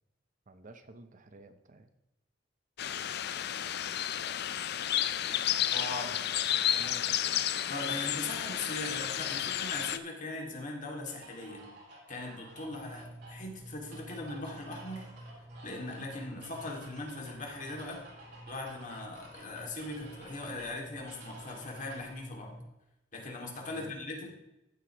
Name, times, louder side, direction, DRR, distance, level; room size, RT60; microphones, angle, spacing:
voice 1, 0.5-1.9 6.6-7.5 23.7-23.9, right 2 dB, 45° right, 9 dB, 0.7 m, -51 dB
sound 1, 2.8-10.0, left 11 dB, 60° left, 0.5 m, -32 dB
voice 2, 5.7-6.1 7.7-11.7 12.1-15.3 15.6-18.0 18.5-22.6 23.1-24.3, left 2 dB, 45° left, 0 dB, 2.3 m, -40 dB
sound 2, 11.1-22.1, right 1 dB, 60° right, 3.5 m, -54 dB
sound 3, 12.5-22.6, right 1 dB, 5° left, 2.8 m, -51 dB
14.5 x 8.2 x 3.0 m, 0.95 s
head